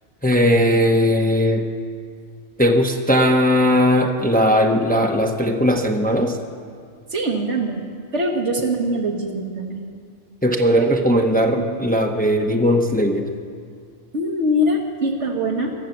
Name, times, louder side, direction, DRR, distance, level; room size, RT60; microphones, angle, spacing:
voice 1, 0.2-1.7 2.6-6.4 10.4-13.3, equal, 10° left, 3 dB, 0.8 m, -18 dB
voice 2, 7.1-7.8 8.1-9.8 11.7-11.8 14.1-15.7, equal, 70° right, 2 dB, 1.8 m, -23 dB
22.0 x 7.5 x 8.0 m, 2.2 s
omnidirectional pair, 1.3 m